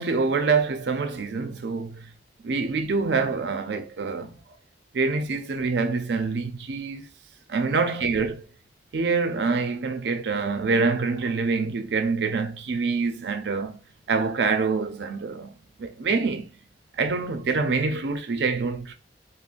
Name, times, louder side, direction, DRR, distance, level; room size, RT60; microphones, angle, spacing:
voice 1, 0.0-2.1 2.4-4.4 4.9-7.1 7.5-8.4 8.9-13.8 14.1-15.5 15.8-16.5 17.0-18.9, right 4 dB, 65° right, 0.4 m, -26 dB
3.7 x 2.0 x 2.4 m
head